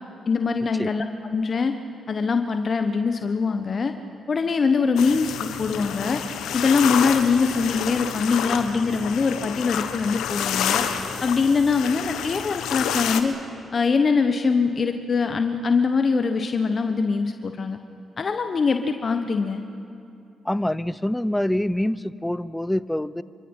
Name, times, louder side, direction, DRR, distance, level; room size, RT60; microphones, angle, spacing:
voice 1, 0.3-1.0 1.3-1.7 2.1-3.9 4.3-6.2 6.5-10.8 11.2-13.3 13.7-17.8 18.2-19.6, left 5 dB, 50° left, 7 dB, 1.3 m, -23 dB
sound 1, 5.0-13.2, left 8 dB, 75° left, 1.3 m, -29 dB
voice 2, 20.4-23.2, left 1 dB, 10° left, 17 dB, 0.8 m, -25 dB
27.5 x 24.0 x 5.7 m, 2.5 s
hypercardioid pair, 40°, 0 cm